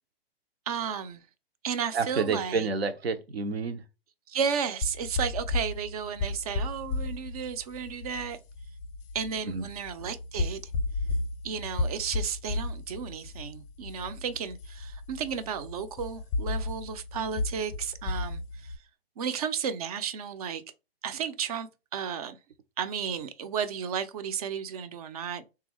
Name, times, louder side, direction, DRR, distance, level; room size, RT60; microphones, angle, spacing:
voice 1, 0.7-1.2 1.6-2.7 4.3-8.4 9.1-10.6 11.4-18.7 19.2-20.6 21.0-22.4 22.8-25.4, right 7 dB, 40° right, 0.4 m, -33 dB
voice 2, 1.9-3.8 9.5-9.6, right 4 dB, 80° right, 0.7 m, -29 dB
sound 1, 4.8-18.8, left 2 dB, 30° left, 0.5 m, -34 dB
3.3 x 2.4 x 2.9 m
figure-of-eight pair, 120°, 31 cm